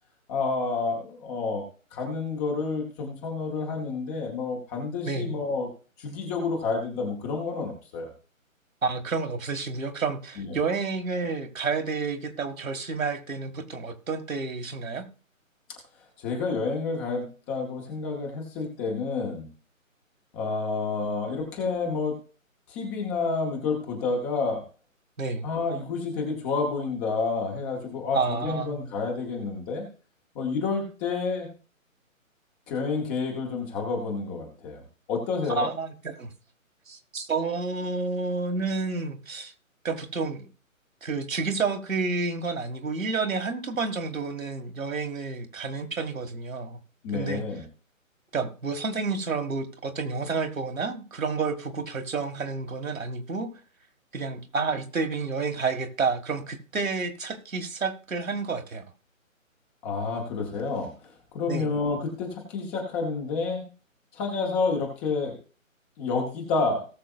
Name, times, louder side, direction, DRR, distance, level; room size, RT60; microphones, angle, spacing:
voice 1, 0.3-1.6 1.9-5.7 6.0-8.1 10.4-10.6 16.2-19.5 20.3-22.2 22.7-24.6 25.4-29.9 30.3-31.5 32.7-35.7 47.0-47.6 59.8-63.7 64.1-65.4 66.0-66.9, left 4 dB, 5° left, 0.7 m, -29 dB
voice 2, 5.1-5.4 8.8-15.1 25.2-25.5 28.1-28.9 35.5-36.3 36.9-39.5 39.8-40.5 41.0-46.8 47.1-47.4 48.3-53.5 54.1-58.9 61.5-61.8, right 4 dB, 75° right, 1.9 m, -30 dB
18.5 x 6.5 x 2.3 m
figure-of-eight pair, 145°, 41 cm